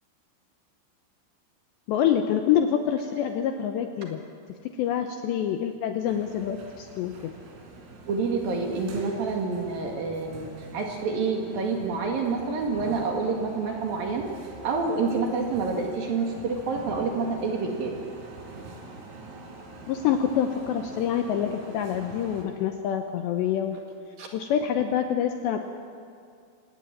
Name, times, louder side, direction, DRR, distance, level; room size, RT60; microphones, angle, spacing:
voice 1, 1.9-4.2 4.6-7.3 19.9-23.8 24.3-25.6, left 9 dB, 80° left, 6 dB, 2.7 m, -26 dB
sound 1, 6.1-22.5, right 3 dB, 75° right, 5.9 m, -44 dB
voice 2, 8.1-14.3 14.6-18.0 24.2-24.3, right 4 dB, 55° right, 1 dB, 3.1 m, -28 dB
24.0 x 18.0 x 8.9 m, 2.3 s
omnidirectional pair, 5.9 m